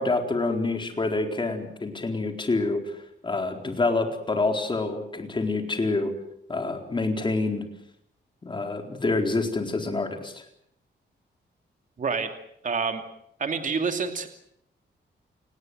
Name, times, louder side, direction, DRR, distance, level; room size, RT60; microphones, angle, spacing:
voice 1, 0.0-3.0 3.2-6.1 6.5-7.6 8.4-10.4, left 3 dB, 25° left, 5 dB, 4.2 m, -27 dB
voice 2, 12.0-12.3 12.6-13.0 13.4-14.3, right 5 dB, 45° right, 7 dB, 2.7 m, -27 dB
29.5 x 19.5 x 7.9 m, 0.73 s
wide cardioid pair, 140°, 19 cm